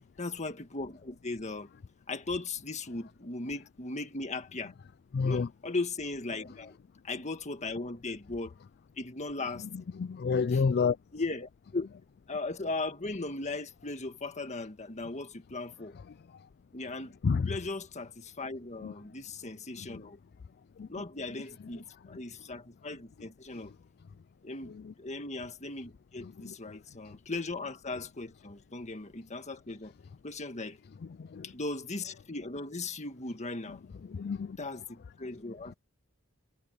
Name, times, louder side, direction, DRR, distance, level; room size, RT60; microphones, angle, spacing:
voice 1, 0.0-1.7 2.1-4.7 5.2-6.8 7.0-8.5 9.0-9.7 10.5-10.6 11.1-11.9 12.3-16.0 16.7-17.1 17.5-20.2 20.9-23.7 24.4-29.9 30.2-30.8 31.4-33.8 34.6-35.7, left 3 dB, 35° left, 1.7 m, -38 dB
voice 2, 5.1-5.5 10.0-11.0 17.2-17.5 18.8-18.9 19.9-20.0 20.8-20.9 24.8-24.9 26.4-26.5 31.2-31.4 34.1-34.6, left 5 dB, 50° left, 0.4 m, -29 dB
head